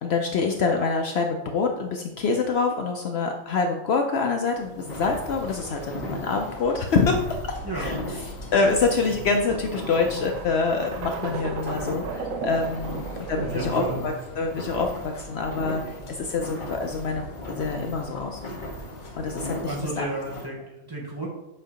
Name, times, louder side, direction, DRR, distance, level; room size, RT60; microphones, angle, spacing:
voice 1, 0.0-7.2 7.7-7.9 8.5-18.4 19.2-20.1, left 4 dB, 65° left, 3 dB, 0.7 m, -26 dB
sound 1, 4.6-20.5, equal, 40° left, 1.0 m, -38 dB
sound 2, 4.8-19.9, left 1 dB, 85° left, 1.2 m, -44 dB
sound 3, 7.4-14.2, right 4 dB, 80° right, 1.1 m, -36 dB
voice 2, 7.6-7.9 12.9-13.0 13.4-14.0 19.2-21.3, right 2 dB, 20° right, -5 dB, 0.9 m, -33 dB
7.6 x 2.7 x 4.9 m, 0.97 s
omnidirectional pair, 1.4 m